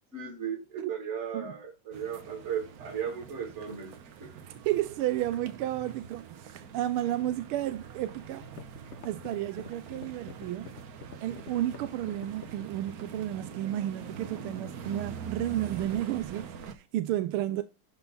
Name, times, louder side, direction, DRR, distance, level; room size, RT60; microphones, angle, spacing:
voice 1, 0.1-3.9 4.2-4.3, right 7 dB, 30° right, 2.5 m, -36 dB
sound 1, 1.9-16.7, right 6 dB, 55° right, 1.1 m, -44 dB
voice 2, 4.5-8.4 9.0-10.8 11.2-17.6, right 13 dB, 80° right, 1.5 m, -32 dB
sound 2, 8.0-8.1 8.4-13.1, left 7 dB, 75° left, 0.6 m, -46 dB
11.5 x 3.9 x 4.0 m
omnidirectional pair, 2.4 m